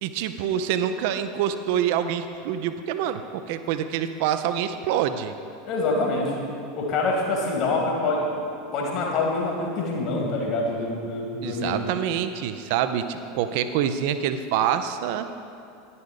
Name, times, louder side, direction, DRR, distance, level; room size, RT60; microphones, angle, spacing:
voice 1, 0.0-5.3 11.4-15.3, right 9 dB, 55° right, 10 dB, 0.4 m, -26 dB
voice 2, 5.7-6.4 6.7-8.4 8.7-11.8, left 2 dB, 45° left, -1 dB, 2.2 m, -25 dB
10.5 x 6.8 x 5.1 m, 2.5 s
figure-of-eight pair, 80°, 0 cm